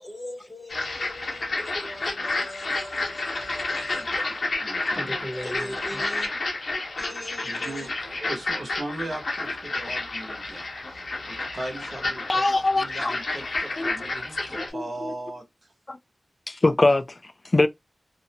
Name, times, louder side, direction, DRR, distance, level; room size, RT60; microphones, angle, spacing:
voice 1, 0.0-4.4 4.8-6.3 7.0-7.9, left 1 dB, 25° left, 0.8 m, -39 dB
sound 1, 0.7-14.7, left 2 dB, 70° left, 0.8 m, -30 dB
voice 2, 4.0-4.4 4.6-5.2 5.5-5.6 7.4-12.4 12.7-15.7, right 2 dB, 55° right, 0.9 m, -38 dB
voice 3, 12.3-13.1 13.8-13.9 14.7-15.1 15.9-16.0 16.5-17.7, left 2 dB, 40° left, 0.3 m, -23 dB
2.5 x 2.1 x 2.7 m
cardioid pair, 50°, 0 cm